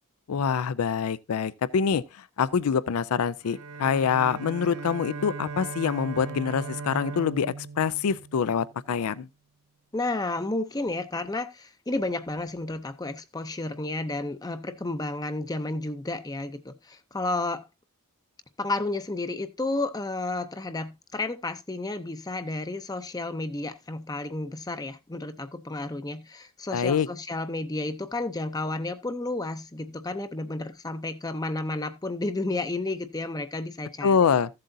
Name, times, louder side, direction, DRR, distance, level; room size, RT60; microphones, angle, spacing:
voice 1, 0.3-2.0 2.4-9.3 26.7-27.1 34.0-34.5, left 6 dB, 90° left, 0.4 m, -25 dB
Bowed string instrument, 3.4-8.9, right 4 dB, 85° right, 0.7 m, -38 dB
voice 2, 9.9-17.7 18.6-34.3, left 2 dB, 15° left, 0.5 m, -32 dB
14.5 x 7.6 x 2.6 m
head